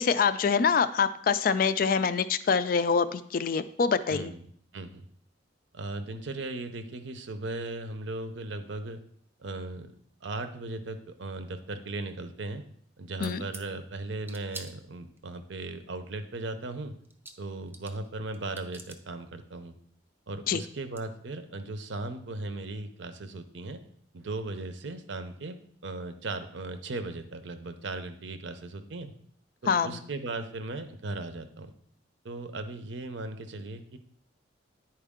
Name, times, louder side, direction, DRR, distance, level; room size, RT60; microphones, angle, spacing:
voice 1, 0.0-4.3 13.2-13.4 20.5-20.6 29.7-30.0, left 5 dB, 45° left, 13 dB, 0.3 m, -25 dB
voice 2, 4.1-4.5 4.7-5.1 5.7-9.0 9.4-9.9 10.2-12.6 13.0-16.9 17.4-19.7 20.3-23.8 24.1-25.6 25.8-29.1 29.6-31.7 32.2-34.0, right 2 dB, 70° right, 9 dB, 0.6 m, -37 dB
sound 1, 13.2-13.7 14.2-15.2 16.7-16.8 17.0-18.1 18.3-19.0 20.3-20.4 20.6-21.0, right 3 dB, 10° right, 0.5 m, -46 dB
10.0 x 4.5 x 3.6 m, 0.64 s
head